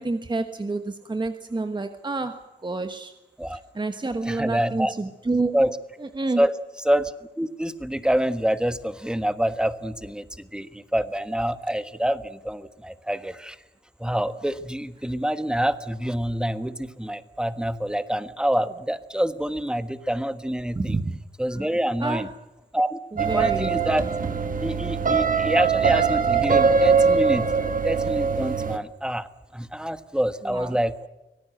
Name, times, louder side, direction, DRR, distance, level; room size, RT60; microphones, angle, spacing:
voice 1, 0.0-3.1 3.5-5.7 6.0-6.4 20.8-21.2 21.5-21.7 22.0-22.3 23.1-23.8 30.4-30.8, right 3 dB, 25° right, 8 dB, 1.3 m, -29 dB
voice 2, 4.3-4.9 5.5-5.8 6.4-6.5 6.8-13.6 14.0-21.0 21.4-22.3 22.7-24.0 24.6-27.5 27.8-31.1, equal, 5° right, 11 dB, 1.3 m, -26 dB
sound 1, 23.2-28.8, right 5 dB, 45° right, 1.7 m, -22 dB
24.5 x 18.5 x 7.8 m, 1.0 s
wide cardioid pair, 110°, 19 cm